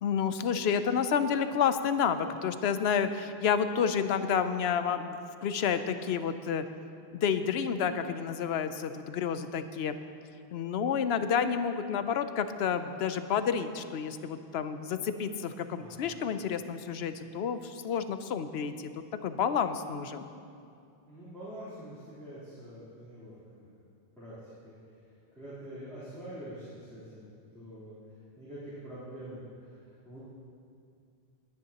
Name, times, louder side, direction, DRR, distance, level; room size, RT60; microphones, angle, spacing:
voice 1, 0.0-6.6 7.1-10.0 10.5-18.9 19.2-20.3, left 7 dB, 85° left, 10 dB, 0.9 m, -30 dB
voice 2, 15.7-16.2 21.1-23.7 24.2-24.8 25.4-28.0 28.4-29.8 30.0-30.2, right 1 dB, 5° left, -14 dB, 3.4 m, -45 dB
19.5 x 10.0 x 2.9 m, 2.4 s
omnidirectional pair, 1.0 m